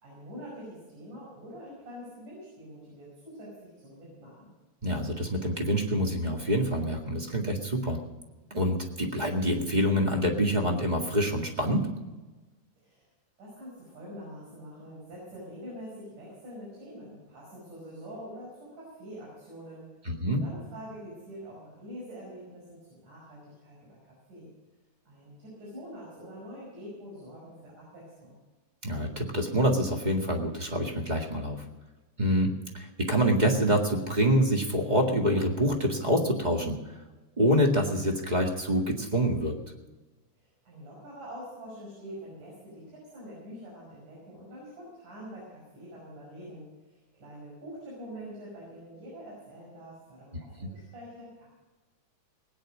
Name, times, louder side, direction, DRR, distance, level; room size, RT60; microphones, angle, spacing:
voice 1, 0.0-4.5 12.8-13.1 13.4-24.5 25.1-28.4 40.4-51.5, equal, 85° right, -5 dB, 7.1 m, -45 dB
voice 2, 4.8-8.0 8.5-11.9 20.0-20.4 28.8-31.6 32.2-36.8 37.4-39.5 50.6-50.7, equal, 20° right, 2 dB, 1.4 m, -26 dB
19.5 x 9.7 x 6.3 m, 1.2 s
omnidirectional pair, 3.5 m